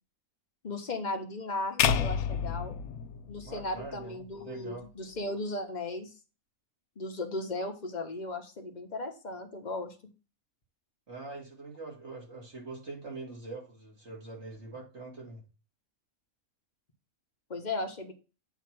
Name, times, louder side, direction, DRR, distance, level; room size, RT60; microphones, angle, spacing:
voice 1, 0.6-2.8 3.3-6.1 7.0-9.9 17.5-18.1, left 2 dB, 35° left, 4 dB, 1.1 m, -36 dB
sound 1, 1.8-4.1, left 8 dB, 85° left, 1.1 m, -29 dB
voice 2, 3.4-4.9 11.1-15.4, right 3 dB, 50° right, -1 dB, 2.5 m, -43 dB
8.2 x 2.9 x 5.9 m, 0.33 s
omnidirectional pair, 1.5 m